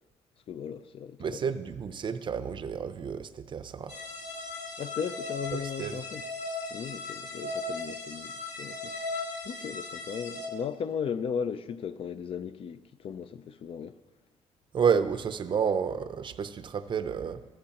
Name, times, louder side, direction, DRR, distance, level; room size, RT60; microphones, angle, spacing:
voice 1, 0.5-1.4 4.8-6.2 6.7-14.0, left 7 dB, 50° left, 0.4 m, -36 dB
voice 2, 1.2-4.0 5.5-6.0 14.7-17.4, right 7 dB, 40° right, 0.5 m, -30 dB
sound 1, 3.9-10.5, left 2 dB, 70° left, 1.5 m, -37 dB
14.0 x 13.0 x 2.9 m
cardioid pair, 135°, 12 cm